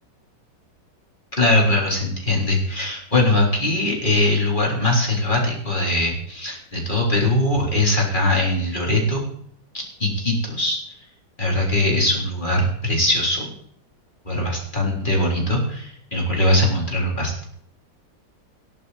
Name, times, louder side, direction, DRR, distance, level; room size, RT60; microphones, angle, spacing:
voice 1, 1.4-9.2 10.0-10.8 11.4-13.5 14.3-17.4, left 1 dB, 25° left, -2 dB, 3.9 m, -21 dB
18.0 x 11.0 x 4.2 m, 0.66 s
omnidirectional pair, 2.0 m